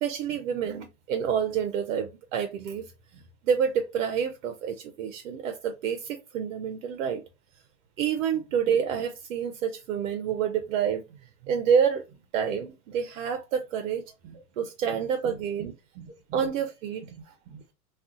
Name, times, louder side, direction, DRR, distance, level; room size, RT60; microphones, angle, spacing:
voice 1, 0.0-2.9 3.4-7.2 8.0-11.0 11.4-12.0 12.3-14.0 14.6-15.7 16.3-17.0, right 7 dB, 65° right, 0.6 m, -28 dB
voice 2, 15.2-16.5 17.0-17.7, right 6 dB, 35° right, 1.1 m, -46 dB
2.4 x 2.3 x 3.6 m
hypercardioid pair, 115°, 44 cm